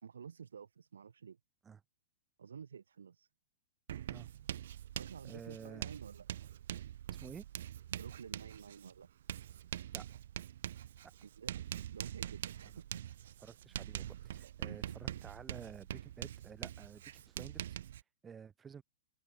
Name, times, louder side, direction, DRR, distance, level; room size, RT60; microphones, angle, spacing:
voice 1, 0.0-1.4 2.4-3.3 4.9-6.3 7.9-9.1 11.2-11.6 11.9-12.9 14.7-15.0, right 7 dB, 85° right, 2.1 m, -51 dB
Writing, 3.9-18.0, right 11 dB, 65° right, 0.5 m, -44 dB
voice 2, 5.2-5.9 7.1-7.5 9.9-10.1 11.0-11.1 12.6-12.7 13.4-17.8 18.2-18.8, right 7 dB, 15° right, 4.8 m, -51 dB
hypercardioid pair, 125°, 0 cm